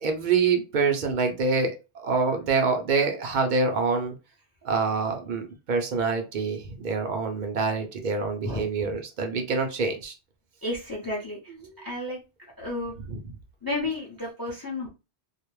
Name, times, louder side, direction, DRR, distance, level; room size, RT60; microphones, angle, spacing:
voice 1, 0.0-4.1 4.6-10.1 11.5-11.8 13.0-13.3, right 4 dB, 55° right, 4 dB, 0.6 m, -26 dB
voice 2, 8.4-9.0 10.6-11.5 11.8-12.2 12.6-12.9 13.6-14.9, left 2 dB, 25° left, -3 dB, 0.5 m, -32 dB
2.3 x 2.1 x 3.0 m, 0.29 s
omnidirectional pair, 1.1 m